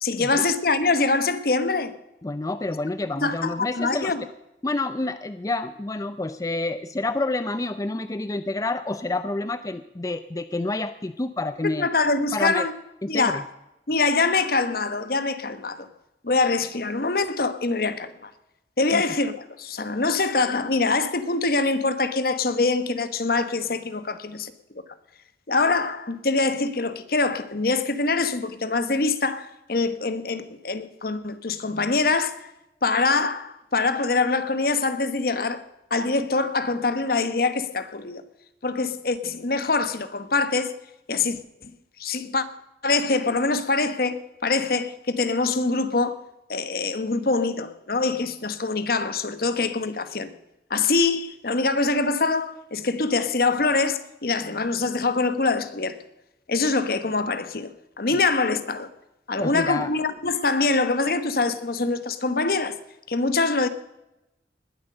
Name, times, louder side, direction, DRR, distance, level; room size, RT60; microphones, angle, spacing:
voice 1, 0.0-1.9 3.2-4.2 11.6-12.7 13.1-13.4 13.9-15.9 16.2-18.3 18.8-24.5 25.5-32.5 32.8-35.6 35.9-38.2 38.6-40.7 41.1-41.7 42.0-42.4 42.8-46.2 46.5-50.3 50.7-56.0 56.5-57.7 58.0-58.9 59.3-62.8 63.1-63.7, left 3 dB, 55° left, 1.1 m, -24 dB
voice 2, 2.2-4.1 4.6-11.9 12.3-12.7 13.0-13.4 18.9-19.0 59.4-59.9, left 2 dB, 20° left, 0.4 m, -28 dB
20.0 x 8.2 x 6.6 m
head